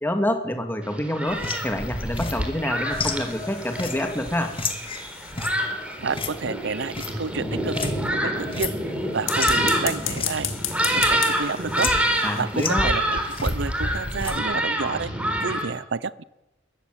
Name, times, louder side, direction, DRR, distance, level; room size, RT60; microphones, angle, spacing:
voice 1, 0.0-4.5 12.2-12.9, left 1 dB, 10° left, 5 dB, 2.3 m, -27 dB
Thunderstorm, 0.8-15.7, right 1 dB, 5° right, 3.8 m, -27 dB
sound 1, 1.3-8.1 8.4-9.6 10.1-10.3 10.7-11.2 11.7-12.2 12.5-14.4, left 3 dB, 30° left, 2.0 m, -31 dB
sound 2, 2.9-5.7 9.1-12.4, left 10 dB, 90° left, 2.7 m, -35 dB
voice 2, 6.0-7.9 8.2-8.7 9.1-10.5 10.8-11.9 12.3-15.1 15.4-16.2, right 4 dB, 65° right, 19 dB, 0.7 m, -30 dB
22.0 x 14.5 x 9.4 m, 1.0 s
head